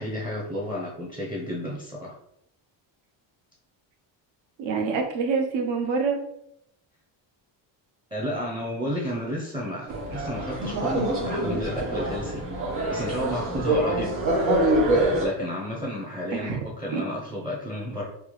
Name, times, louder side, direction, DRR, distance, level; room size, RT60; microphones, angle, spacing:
voice 1, 0.0-2.2 8.1-12.4 12.9-14.1 14.9-18.1, equal, 10° right, -3 dB, 0.5 m, -31 dB
voice 2, 4.6-6.2 16.3-16.6 16.9-17.0, right 5 dB, 70° right, 3 dB, 0.7 m, -26 dB
sound 1, 9.9-15.3, right 1 dB, 85° right, 1.2 m, -25 dB
3.4 x 2.0 x 3.0 m, 0.76 s
cardioid pair, 110°, 47 cm